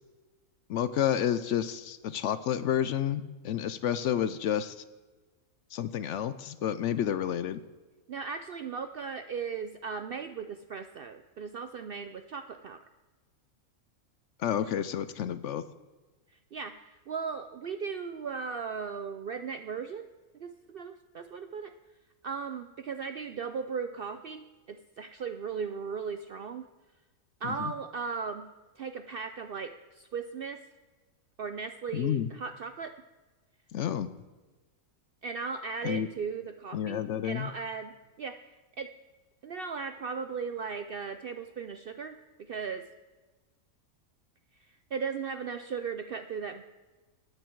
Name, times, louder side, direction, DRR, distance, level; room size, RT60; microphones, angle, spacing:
voice 1, 0.7-4.8 5.7-7.6 14.4-15.6 27.4-27.7 31.9-32.3 33.7-34.1 35.8-36.1 36.7-37.5, left 9 dB, 65° left, 14 dB, 0.8 m, -30 dB
voice 2, 8.1-12.8 16.5-20.1 20.4-21.7 22.2-26.7 27.4-28.5 28.8-30.6 31.4-32.9 35.2-38.5 38.8-38.9 39.4-42.9 44.9-46.6, right 5 dB, 65° right, 9 dB, 0.5 m, -37 dB
13.0 x 9.6 x 4.6 m, 1.3 s
omnidirectional pair, 1.5 m